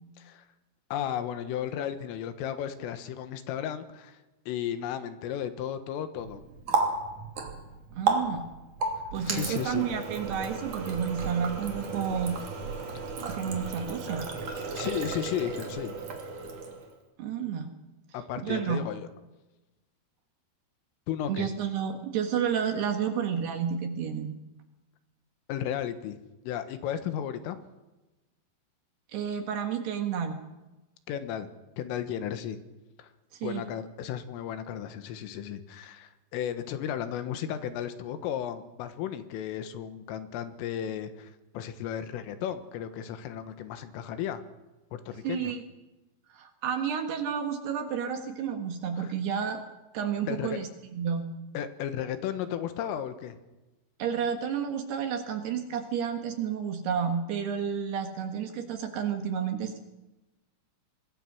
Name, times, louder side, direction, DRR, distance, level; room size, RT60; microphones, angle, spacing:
voice 1, 0.9-4.2 4.5-6.4 9.2-9.9 14.7-16.0 18.1-19.1 21.1-21.5 25.5-26.2 26.5-27.6 31.1-31.5 31.8-32.6 33.0-33.1 33.4-44.4 44.9-45.5 49.0-49.1 50.3-50.6 51.6-53.4, left 10 dB, 80° left, 10 dB, 4.0 m, -34 dB
Water tap faucet, 6.2-17.0, right 4 dB, 45° right, 3.7 m, -33 dB
voice 2, 8.0-8.5 9.1-12.4 13.3-14.3 17.2-17.7 18.4-18.9 21.3-24.4 29.1-30.4 33.3-33.6 45.2-45.6 46.3-49.6 49.9-51.3 54.0-59.8, right 7 dB, 65° right, 6 dB, 3.1 m, -31 dB
25.5 x 21.5 x 6.2 m, 1.1 s
omnidirectional pair, 6.0 m